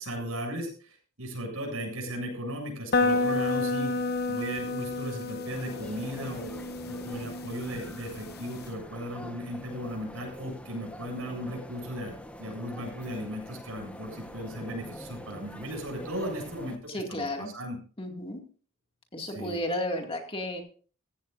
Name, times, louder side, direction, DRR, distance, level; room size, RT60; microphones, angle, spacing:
voice 1, 0.0-3.9 4.3-12.1 12.4-16.8 17.1-17.8 19.3-19.6, equal, 75° right, 1 dB, 7.5 m, -36 dB
sound 1, 2.9-8.7, left 3 dB, 45° left, 0.9 m, -30 dB
sound 2, 5.5-16.8, equal, 5° left, 1.2 m, -45 dB
voice 2, 16.9-17.5 18.0-18.4 19.1-20.6, left 1 dB, 25° left, 3 dB, 2.3 m, -33 dB
16.0 x 16.0 x 2.6 m, 0.40 s
head